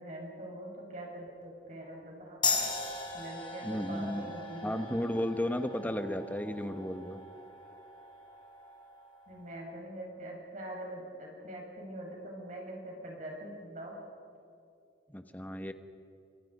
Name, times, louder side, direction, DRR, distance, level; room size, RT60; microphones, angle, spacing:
voice 1, 0.0-2.6 3.1-4.9 9.3-14.0, right 1 dB, 40° right, -1 dB, 6.3 m, -43 dB
sound 1, 2.4-9.5, left 4 dB, 25° left, 4.0 m, -38 dB
voice 2, 3.6-4.3 4.6-7.2 15.1-15.7, left 1 dB, 10° left, 8 dB, 1.2 m, -34 dB
30.0 x 26.0 x 5.5 m, 2.6 s
head